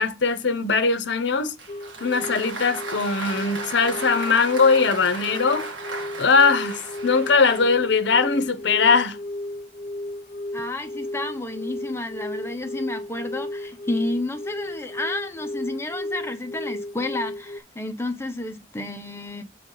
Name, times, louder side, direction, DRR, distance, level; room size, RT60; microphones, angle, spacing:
voice 1, 0.0-1.5 2.0-5.7 6.2-9.2, left 4 dB, 65° left, 0.7 m, -20 dB
Applause, 1.6-7.9, right 3 dB, 70° right, 1.7 m, -36 dB
sound 1, 1.7-17.6, left 1 dB, 35° left, 0.3 m, -34 dB
voice 2, 10.5-19.4, left 2 dB, 15° left, 0.7 m, -31 dB
6.9 x 3.7 x 3.9 m
head